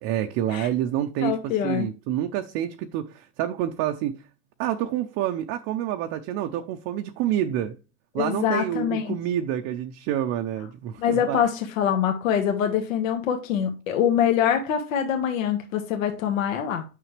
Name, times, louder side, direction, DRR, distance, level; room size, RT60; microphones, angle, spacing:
voice 1, 0.0-4.2 4.6-7.8 8.1-11.4, right 11 dB, 35° right, 0.7 m, -28 dB
voice 2, 1.2-1.9 8.2-9.2 11.0-16.8, left 9 dB, 70° left, 1.7 m, -24 dB
9.1 x 6.2 x 3.3 m
supercardioid pair, 140°, 41 cm